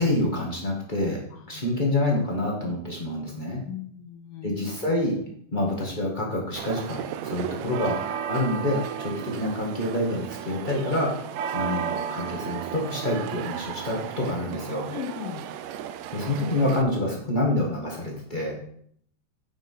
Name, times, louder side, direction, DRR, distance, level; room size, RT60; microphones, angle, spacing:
voice 1, 0.0-1.2 1.5-3.6 4.4-5.2 5.5-8.0 8.3-14.9 16.1-18.6, left 1 dB, 50° left, -2 dB, 0.5 m, -27 dB
voice 2, 1.3-1.6 3.6-4.6 14.9-15.5, left 11 dB, 80° left, 2 dB, 2.5 m, -38 dB
sound 1, 6.6-16.8, right 9 dB, 80° right, 2.1 m, -34 dB
8.6 x 5.9 x 5.5 m, 0.63 s
omnidirectional pair, 3.9 m